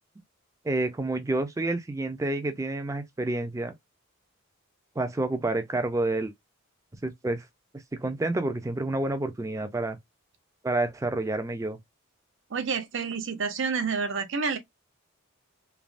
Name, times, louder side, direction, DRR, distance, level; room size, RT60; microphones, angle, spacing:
voice 1, 0.6-3.7 5.0-6.3 7.0-7.4 7.9-10.0 10.6-11.8, right 2 dB, 15° right, 0.3 m, -29 dB
voice 2, 12.5-14.6, right 5 dB, 60° right, 0.6 m, -29 dB
3.2 x 2.0 x 2.5 m
head